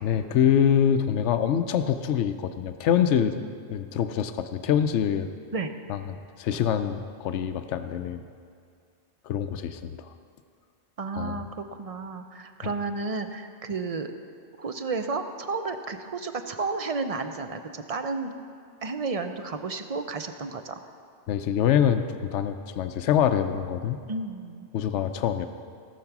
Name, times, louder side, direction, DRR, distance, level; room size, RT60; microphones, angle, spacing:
voice 1, 0.0-3.4 3.7-5.3 5.9-8.2 9.2-10.1 11.2-11.5 21.3-24.0 24.7-25.5, left 9 dB, 90° left, 9 dB, 0.9 m, -25 dB
voice 2, 11.0-14.1 14.6-18.3 18.8-20.7 24.1-24.7, right 4 dB, 40° right, 8 dB, 0.6 m, -32 dB
17.5 x 6.8 x 5.9 m, 2.2 s
omnidirectional pair, 1.2 m